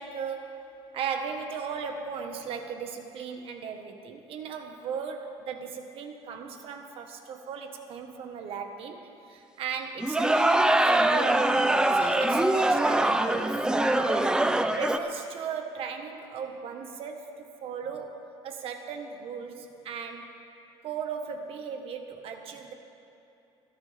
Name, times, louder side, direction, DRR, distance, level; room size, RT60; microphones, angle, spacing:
voice 1, 0.0-11.6 11.9-14.5 14.7-20.3 20.8-22.7, right 6 dB, 60° right, 5 dB, 1.5 m, -37 dB
sound 1, 10.0-15.0, right 1 dB, 5° right, 0.6 m, -23 dB
27.0 x 13.5 x 3.5 m, 2.8 s
cardioid pair, 150°, 11 cm